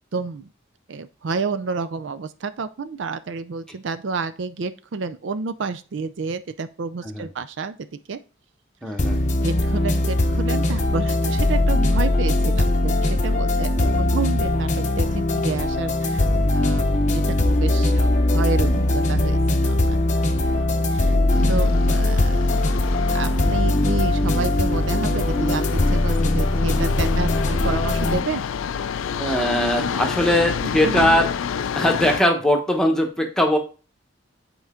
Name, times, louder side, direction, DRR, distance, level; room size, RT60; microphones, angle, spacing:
voice 1, 0.1-0.5 0.9-8.2 8.9-9.0 9.4-13.7 14.1-20.0 20.4-21.2 21.5-22.4 23.1-28.4 30.6-31.0, right 4 dB, 65° right, 11 dB, 0.4 m, -30 dB
voice 2, 8.8-9.2 13.7-14.1 29.2-33.6, equal, 5° left, 3 dB, 1.1 m, -21 dB
sound 1, 9.0-28.2, left 1 dB, 35° left, 0.7 m, -20 dB
sound 2, 21.3-32.2, left 7 dB, 75° left, 0.4 m, -29 dB
8.0 x 4.5 x 3.7 m, 0.35 s
head